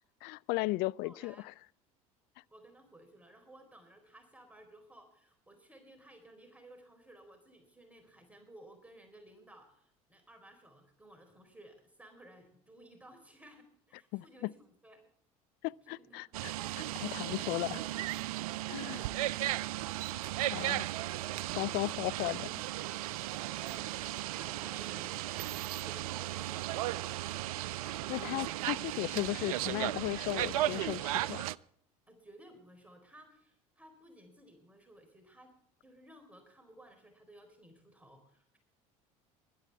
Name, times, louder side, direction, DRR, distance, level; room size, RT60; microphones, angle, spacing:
voice 1, 0.2-1.5 14.1-14.5 15.6-16.5 16.8-17.8 18.7-19.0 20.5-20.9 21.6-22.6 28.1-31.5, left 21 dB, 60° left, 0.4 m, -36 dB
voice 2, 1.0-1.5 2.5-15.0 15.8-16.2 17.0-18.0 21.3-21.9 23.4-27.2 32.1-35.5 35.8-38.6, right 1 dB, 10° right, 4.1 m, -57 dB
sound 1, 16.3-31.6, right 15 dB, 80° right, 0.4 m, -36 dB
20.5 x 12.0 x 3.5 m
hypercardioid pair, 70°, 18 cm